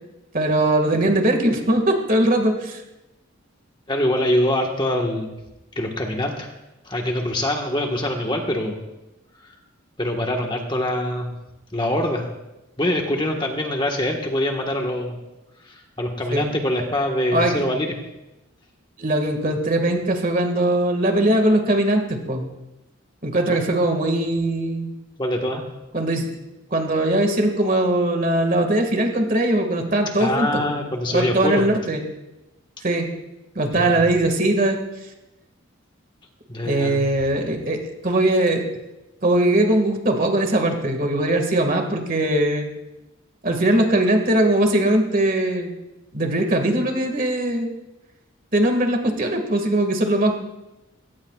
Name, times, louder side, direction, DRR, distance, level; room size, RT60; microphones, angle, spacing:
voice 1, 0.3-2.8 16.3-16.5 17.3-17.6 19.0-22.5 23.2-24.9 25.9-26.3 26.7-32.0 32.8-33.1 33.6-34.8 36.6-38.6 39.2-42.7 43.4-45.7 46.1-47.7 48.5-50.3, right 1 dB, 40° right, 4 dB, 2.0 m, -20 dB
voice 2, 3.9-5.3 5.7-6.5 6.8-8.8 10.0-11.3 11.7-12.3 12.8-15.1 15.6-17.9 23.5-23.6 25.2-25.6 30.2-31.7 33.7-34.0 36.5-37.0, left 1 dB, 25° left, 1 dB, 1.5 m, -24 dB
21.0 x 17.5 x 2.4 m, 0.99 s
head